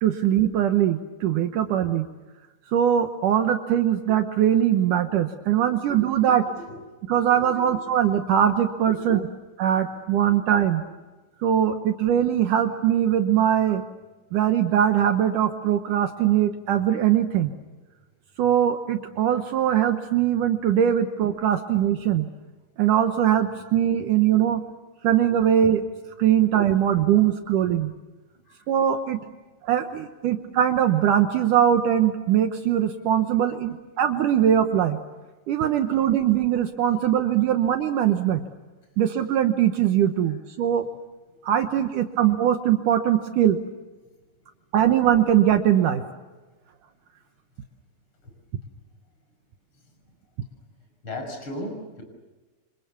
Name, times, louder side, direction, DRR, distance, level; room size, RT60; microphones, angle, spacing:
voice 1, 0.0-2.1 2.7-6.5 7.1-9.3 9.6-10.8 11.4-13.8 14.3-17.5 18.4-22.3 22.8-24.6 25.0-25.9 26.2-27.9 28.7-29.2 29.6-35.0 35.5-38.4 39.0-40.9 41.4-43.6 44.7-46.0, right 10 dB, 70° right, 6 dB, 2.5 m, -21 dB
voice 2, 7.2-7.8 8.9-9.0 9.7-9.8 26.3-26.4 26.9-27.0 28.4-28.7 35.6-35.9 40.2-40.4 44.0-44.2 47.6-47.7 48.2-48.3 48.6-48.7 49.7-50.5 51.0-52.0, left 1 dB, 35° left, 4 dB, 6.7 m, -40 dB
28.5 x 26.0 x 7.0 m, 1.2 s
omnidirectional pair, 4.0 m